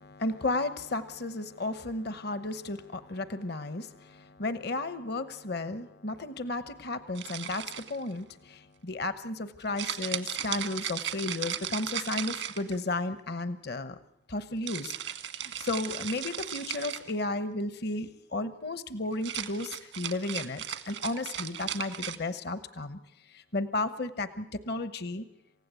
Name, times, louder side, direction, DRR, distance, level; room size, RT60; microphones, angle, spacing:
voice 1, 0.0-14.0 14.3-25.2, left 2 dB, 60° left, 12 dB, 1.0 m, -34 dB
sound 1, 7.1-8.1 9.8-13.0 14.7-17.1 19.1-22.2, right 10 dB, 90° right, 1.6 m, -36 dB
27.5 x 16.0 x 8.2 m, 0.80 s
head